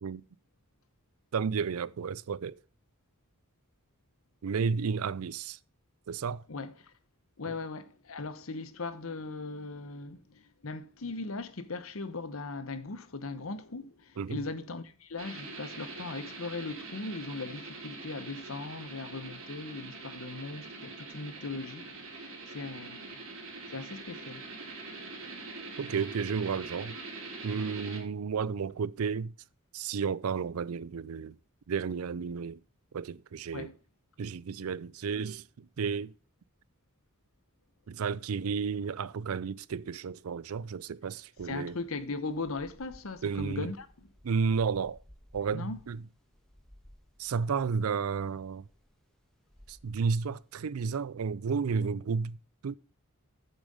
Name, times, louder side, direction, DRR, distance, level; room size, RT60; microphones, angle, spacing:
voice 1, 1.3-2.6 4.4-5.6 6.1-6.4 7.5-7.6 14.2-14.4 25.8-27.0 27.4-29.3 29.7-31.4 31.7-32.6 32.9-33.7 34.2-36.1 37.9-41.8 43.2-43.7 44.2-45.0 45.3-46.0 47.2-48.6 49.7-52.4 52.6-52.7, right 5 dB, 85° right, 0.5 m, -32 dB
voice 2, 6.5-6.9 7.4-23.2 23.7-24.5 33.5-33.7 41.4-43.9 45.5-45.8, left 3 dB, 70° left, 1.0 m, -39 dB
sound 1, 15.2-28.0, right 3 dB, 65° right, 4.0 m, -44 dB
sound 2, 41.4-50.7, equal, ahead, 1.6 m, -58 dB
8.2 x 7.3 x 5.3 m
head